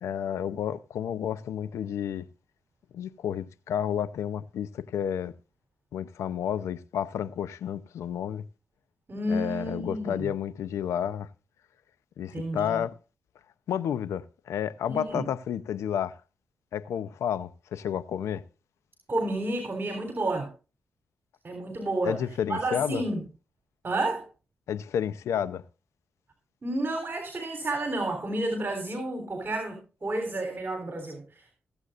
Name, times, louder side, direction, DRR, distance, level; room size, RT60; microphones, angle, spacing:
voice 1, 0.0-2.3 2.9-5.3 5.9-8.4 9.3-11.3 12.2-13.0 13.7-16.2 16.7-18.4 22.0-23.0 24.7-25.6, left 9 dB, 85° left, 0.7 m, -31 dB
voice 2, 9.1-10.3 12.3-12.8 14.9-15.3 19.1-20.5 21.4-22.2 22.5-23.2 23.8-24.3 26.6-31.6, right 2 dB, 45° right, 3.6 m, -31 dB
22.5 x 8.1 x 2.5 m
cardioid pair, 55°, 5 cm